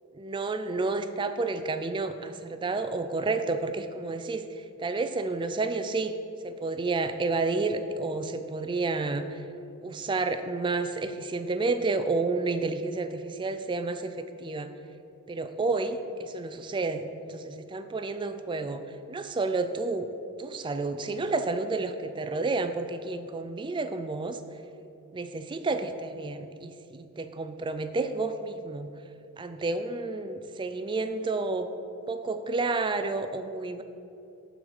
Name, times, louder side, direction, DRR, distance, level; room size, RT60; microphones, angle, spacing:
voice 1, 0.2-6.2 6.4-9.4 9.8-14.7 15.3-18.8 19.1-20.1 20.4-24.4 25.1-28.9 29.4-31.7 32.1-33.8, right 3 dB, 20° right, 10 dB, 0.3 m, -30 dB
12.0 x 4.0 x 4.7 m, 2.7 s
head